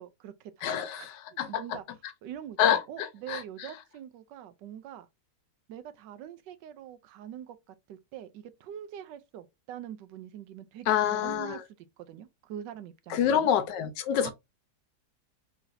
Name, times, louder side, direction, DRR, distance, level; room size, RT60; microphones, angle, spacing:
voice 1, 0.0-1.8 2.2-5.1 5.7-11.6 12.1-13.5 14.2-14.3, right 10 dB, 85° right, 1.3 m, -44 dB
voice 2, 0.6-1.6 2.6-3.7 10.9-11.6 13.1-14.3, left 9 dB, 85° left, 1.2 m, -27 dB
4.7 x 3.2 x 2.6 m
omnidirectional pair, 1.9 m